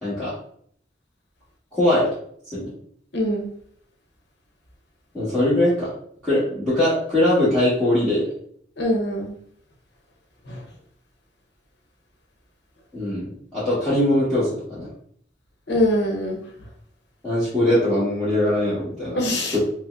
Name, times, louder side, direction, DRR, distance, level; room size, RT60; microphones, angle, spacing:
voice 1, 0.0-0.3 1.7-2.1 2.5-2.7 5.1-5.9 6.2-8.3 12.9-14.9 17.2-19.6, left 1 dB, ahead, -15 dB, 1.2 m, -21 dB
voice 2, 3.1-3.5 8.8-9.3 15.7-16.4 19.2-19.6, left 1 dB, 65° left, 1 dB, 0.8 m, -22 dB
5.1 x 2.1 x 2.4 m, 0.62 s
head